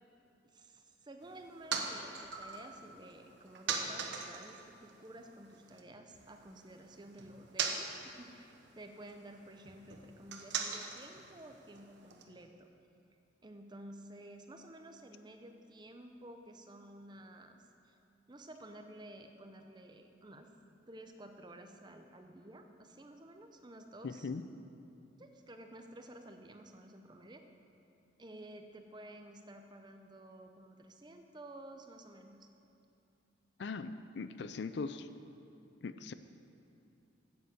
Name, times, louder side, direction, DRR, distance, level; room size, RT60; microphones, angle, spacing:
voice 1, 0.4-12.7 13.4-18.0 18.3-20.5 20.9-24.6 25.2-27.4 28.2-32.5, right 1 dB, 25° right, 5 dB, 0.7 m, -52 dB
sound 1, 1.2-5.8 6.1-12.2, right 5 dB, 70° right, 1.0 m, -42 dB
voice 2, 24.0-24.4 33.6-35.1 35.8-36.1, left 4 dB, 65° left, 11 dB, 0.4 m, -40 dB
9.5 x 8.3 x 7.7 m, 2.7 s
head